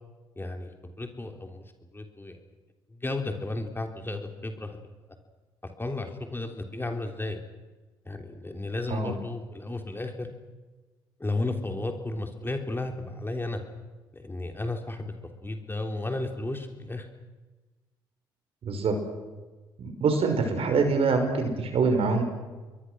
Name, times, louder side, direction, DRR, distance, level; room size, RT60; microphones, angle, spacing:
voice 1, 0.4-1.6 1.9-2.4 2.9-4.8 5.6-7.4 8.1-10.3 11.2-13.6 14.1-15.1 15.4-17.1, left 2 dB, 20° left, 5 dB, 3.5 m, -33 dB
voice 2, 18.6-18.9 19.8-22.2, right 4 dB, 55° right, 5 dB, 5.7 m, -25 dB
29.5 x 22.5 x 6.3 m, 1.2 s
hypercardioid pair, 50°, 12 cm